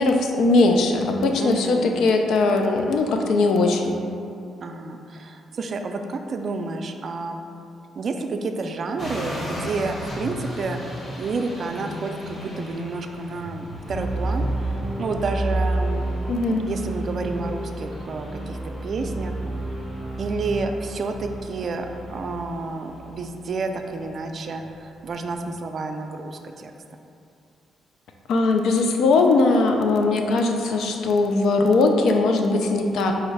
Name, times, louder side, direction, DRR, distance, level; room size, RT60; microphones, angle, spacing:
voice 1, 0.0-4.0 16.3-16.7 28.3-33.2, left 3 dB, 75° left, 3 dB, 0.4 m, -20 dB
voice 2, 1.4-1.9 4.6-7.5 8.0-16.1 16.7-19.4 19.7-19.8 20.2-26.7, right 3 dB, 55° right, 5 dB, 0.3 m, -30 dB
sound 1, 9.0-25.5, equal, 45° left, 1.2 m, -39 dB
sound 2, 13.7-23.7, right 2 dB, 10° right, 0.6 m, -30 dB
4.6 x 2.1 x 4.6 m, 2.6 s
supercardioid pair, 65°, 0 cm